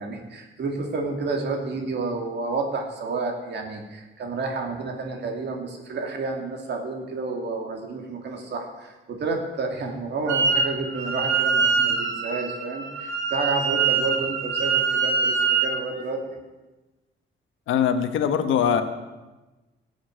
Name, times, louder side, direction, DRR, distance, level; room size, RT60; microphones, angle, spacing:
voice 1, 0.0-16.4, right 3 dB, 60° right, 2 dB, 2.9 m, -30 dB
Wind instrument woodwind instrument, 10.3-10.7 10.9-15.8, right 5 dB, 80° right, 2.7 m, -24 dB
voice 2, 17.7-18.8, left 8 dB, 80° left, 9 dB, 1.2 m, -22 dB
16.0 x 7.2 x 8.2 m, 1.1 s
cardioid pair, 90°, 20 cm